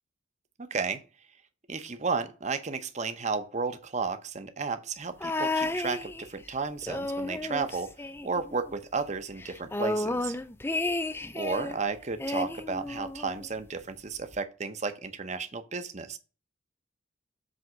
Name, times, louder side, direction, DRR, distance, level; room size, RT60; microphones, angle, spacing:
voice 1, 1.7-7.9 8.2-10.4 11.4-16.2, right 4 dB, 35° right, 10 dB, 0.8 m, -33 dB
sound 1, 5.2-6.5 6.8-8.7 9.0-9.1 9.4-11.8 12.2-13.5 14.3-14.4, left 2 dB, 10° left, 0.5 m, -32 dB
7.8 x 3.5 x 6.3 m, 0.33 s
head